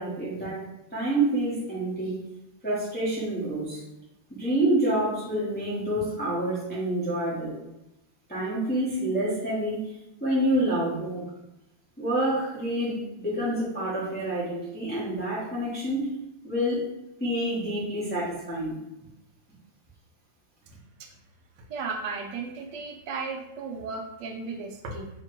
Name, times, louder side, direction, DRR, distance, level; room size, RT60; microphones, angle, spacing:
voice 1, 0.0-2.2 2.6-3.8 4.3-7.5 8.3-9.9 10.2-11.2 12.0-16.1 16.4-16.8 17.2-18.8, right 1 dB, 10° left, -8 dB, 0.4 m, -28 dB
voice 2, 21.7-25.1, right 4 dB, 70° right, 3 dB, 1.1 m, -35 dB
2.9 x 2.9 x 4.4 m, 0.91 s
omnidirectional pair, 2.2 m